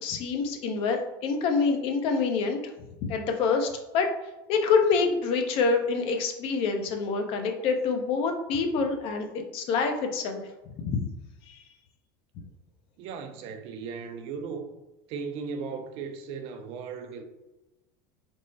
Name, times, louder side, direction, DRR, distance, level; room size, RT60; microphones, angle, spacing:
voice 1, 0.0-2.6 3.1-3.7 3.9-4.1 4.5-9.3 9.5-10.4 10.8-11.0 11.5-11.6, left 5 dB, 55° left, 0.6 m, -26 dB
voice 2, 13.0-14.7 15.1-17.2, right 5 dB, 55° right, 0.5 m, -37 dB
3.6 x 2.0 x 4.0 m
supercardioid pair, 105°, 11 cm